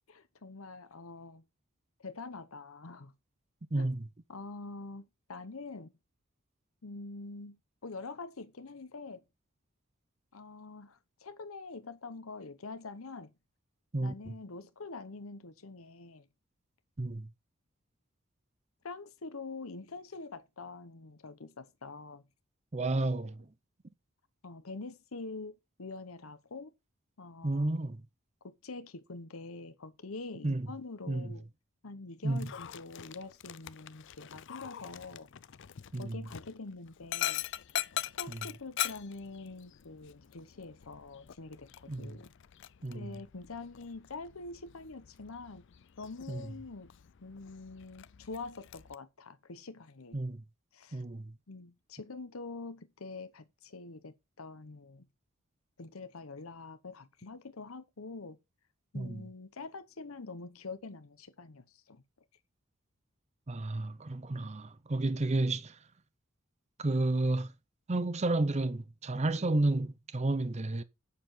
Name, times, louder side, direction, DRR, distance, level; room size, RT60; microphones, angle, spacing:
voice 1, 0.1-1.4 2.0-3.1 3.8-3.9 4.3-5.9 6.8-9.2 10.3-13.3 14.0-16.3 18.8-22.2 24.4-26.7 27.2-27.7 28.4-31.5 31.8-35.3 36.0-37.4 38.1-42.3 42.9-45.6 46.0-46.9 47.2-50.2 50.7-51.0 51.5-55.1 55.8-58.4 58.9-62.0, left 3 dB, 85° left, 1.0 m, -45 dB
voice 2, 3.7-4.1 13.9-14.1 17.0-17.3 22.7-23.4 27.4-28.0 30.4-30.7 31.1-31.3 32.2-32.5 35.9-36.2 41.9-42.2 42.8-43.0 46.3-46.4 50.1-50.4 50.9-51.3 58.9-59.2 63.5-65.8 66.8-67.5 67.9-70.8, right 2 dB, 30° right, 0.6 m, -31 dB
Dog, 32.3-48.9, left 12 dB, 60° left, 0.5 m, -42 dB
8.6 x 6.8 x 5.6 m
head